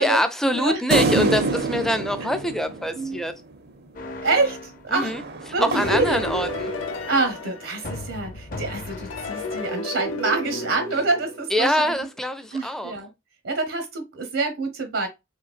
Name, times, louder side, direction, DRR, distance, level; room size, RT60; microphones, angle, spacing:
voice 1, 0.0-3.3 4.9-5.2 5.6-6.7 11.5-12.9, equal, ahead, 0.4 m, -24 dB
sound 1, 0.9-3.6 5.0-7.1, right 3 dB, 50° right, 0.5 m, -27 dB
sound 2, 3.9-4.8 5.8-7.4 7.8-9.7, left 2 dB, 45° left, 0.6 m, -36 dB
voice 2, 4.2-5.1 5.5-6.2 7.1-12.1 12.5-13.1 13.4-15.1, right 3 dB, 80° right, 0.9 m, -26 dB
sound 3, 5.6-8.4 9.1-11.9, left 1 dB, 85° left, 0.6 m, -32 dB
3.9 x 3.1 x 2.4 m
head